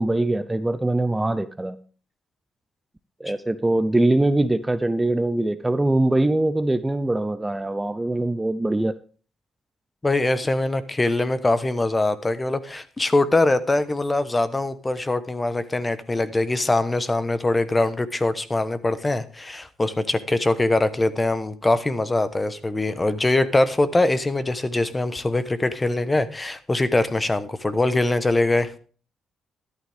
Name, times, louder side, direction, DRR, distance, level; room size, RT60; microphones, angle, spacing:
voice 1, 0.0-1.8 3.2-8.9, right 2 dB, 15° right, 13 dB, 0.6 m, -22 dB
voice 2, 10.0-28.7, left 2 dB, 20° left, 13 dB, 1.1 m, -22 dB
13.0 x 11.5 x 3.5 m, 0.41 s
cardioid pair, 90°, 0 cm